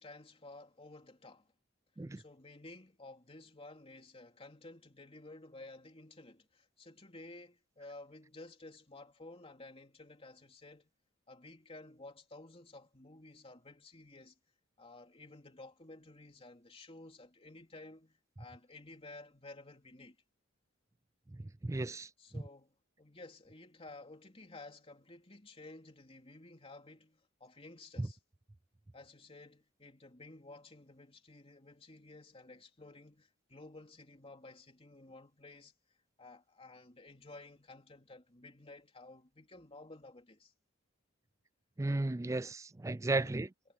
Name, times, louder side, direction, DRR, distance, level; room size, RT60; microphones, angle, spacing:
voice 1, 0.0-1.5 2.1-10.9 11.3-14.4 14.8-20.2 22.2-28.2 28.9-35.7 36.2-40.5 43.2-43.5, left 2 dB, 30° left, 3.2 m, -53 dB
voice 2, 21.6-22.1 22.3-22.4 28.0-28.1 41.8-43.5, right 2 dB, 15° right, 0.4 m, -34 dB
head